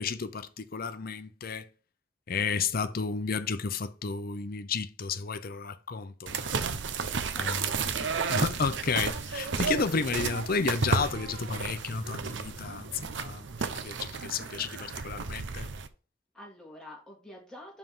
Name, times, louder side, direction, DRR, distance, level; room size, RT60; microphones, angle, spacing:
voice 1, 0.0-1.7 2.3-6.7 7.3-7.7 8.3-15.7, left 5 dB, 55° left, 0.6 m, -32 dB
sound 1, 6.3-15.9, right 5 dB, 70° right, 0.7 m, -32 dB
voice 2, 7.3-8.2 16.3-17.8, left 1 dB, 5° left, 2.3 m, -47 dB
5.5 x 4.5 x 5.5 m
head